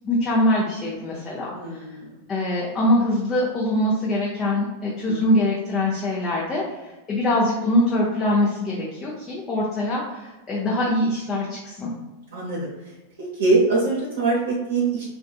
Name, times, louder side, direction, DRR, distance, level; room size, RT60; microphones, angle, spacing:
voice 1, 0.0-1.8 2.3-6.6 7.1-11.9, left 1 dB, 20° left, -5 dB, 0.6 m, -23 dB
voice 2, 1.5-2.2 5.1-5.2 12.3-15.0, right 3 dB, 60° right, -5 dB, 0.8 m, -24 dB
3.4 x 2.5 x 2.3 m, 1.1 s
figure-of-eight pair, 90°, 0 cm